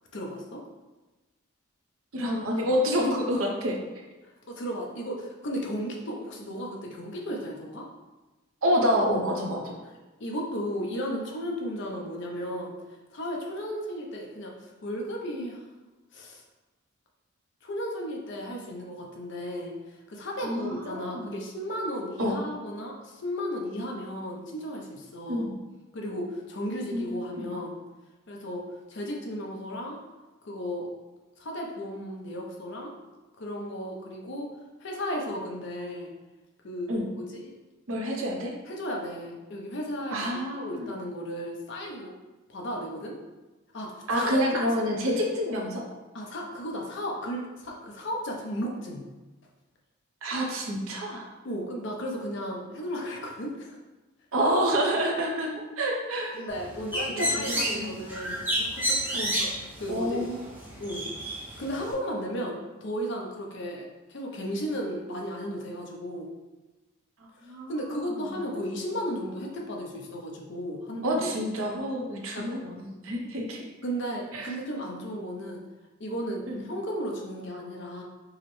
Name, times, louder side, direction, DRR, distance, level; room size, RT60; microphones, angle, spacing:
voice 1, 0.1-0.6 4.2-7.9 10.2-12.8 13.1-15.6 16.1-16.4 17.6-25.5 25.9-27.8 28.3-28.6 28.9-30.0 30.4-30.9 31.4-33.0 33.4-34.5 34.8-36.1 36.6-37.5 38.7-42.1 42.5-43.2 43.7-44.6 46.1-49.0 51.4-53.8 56.3-59.5 59.8-60.2 60.8-61.1 61.6-66.3 67.4-71.3 72.3-72.5 73.8-75.6 76.0-78.0, equal, 55° left, 0 dB, 0.6 m, -34 dB
voice 2, 2.1-3.8 8.6-9.8 20.4-21.3 22.2-22.4 25.3-25.5 26.9-27.5 36.9-37.1 37.9-38.5 40.1-40.9 44.1-45.8 50.2-51.3 54.3-56.4 56.9-58.0 59.1-59.4 59.9-60.4 67.4-68.4 71.0-73.6 74.3-74.5 76.5-76.7, equal, 70° right, 0 dB, 0.7 m, -28 dB
Bird, 56.5-61.9, equal, 10° right, 0.5 m, -31 dB
4.7 x 2.0 x 3.0 m, 1.2 s
head